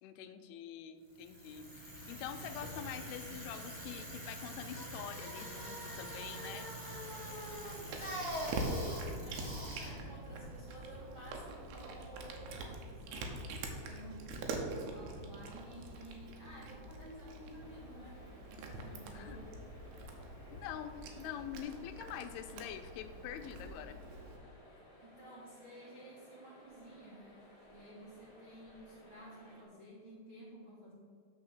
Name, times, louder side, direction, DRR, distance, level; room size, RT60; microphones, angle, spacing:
voice 1, 0.0-6.7 19.1-19.4 20.5-24.0, left 9 dB, 85° left, 7 dB, 2.5 m, -45 dB
Bicycle, 1.1-11.2, right 1 dB, 25° right, 0.9 m, -44 dB
Cat, 7.3-24.4, right 2 dB, 80° right, 3.0 m, -45 dB
voice 2, 7.7-8.4 9.0-18.2 18.5-19.6 25.0-27.3 27.7-30.9, right 1 dB, 40° right, -8 dB, 1.9 m, -53 dB
sound 1, 17.6-29.6, left 1 dB, 35° left, 1.9 m, -59 dB
8.6 x 4.8 x 7.3 m, 2.3 s
omnidirectional pair, 4.7 m